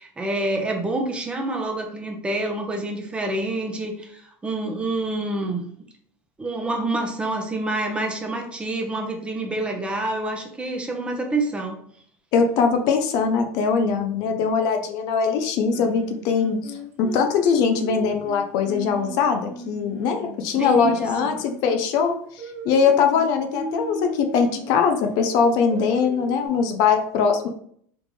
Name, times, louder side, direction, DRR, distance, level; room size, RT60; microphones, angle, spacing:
voice 1, 0.0-5.7 6.4-11.8 20.5-21.3, right 2 dB, 15° right, 2 dB, 0.7 m, -27 dB
voice 2, 12.3-22.1 22.6-27.5, left 6 dB, 60° left, 5 dB, 0.5 m, -21 dB
Singing, 15.7-20.4 20.8-24.8 25.3-26.5, right 1 dB, 30° right, 1.5 m, -37 dB
3.5 x 2.5 x 3.2 m, 0.63 s
supercardioid pair, 115°, 8 cm